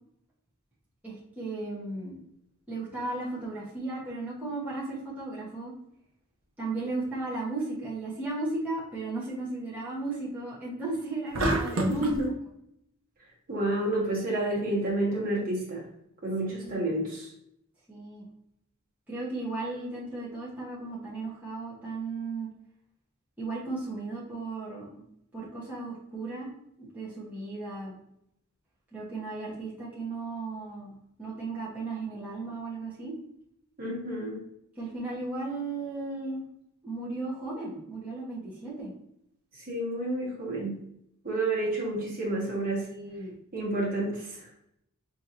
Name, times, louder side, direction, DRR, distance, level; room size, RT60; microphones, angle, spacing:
voice 1, 1.0-2.2 2.7-5.7 6.6-12.1 16.6-16.9 17.9-18.3 19.1-22.5 23.4-25.0 25.3-26.5 26.8-28.0 28.9-33.1 34.8-36.4 36.8-38.9 42.9-43.4, right 3 dB, 10° right, -8 dB, 1.1 m, -35 dB
sound 1, 11.3-12.2, right 1 dB, 80° right, 0.8 m, -27 dB
voice 2, 11.9-12.3 13.5-15.8 16.2-17.3 33.8-34.4 39.7-40.8 41.2-42.9 43.5-44.4, right 1 dB, 45° right, -4 dB, 1.5 m, -29 dB
5.6 x 2.8 x 2.6 m, 0.75 s
head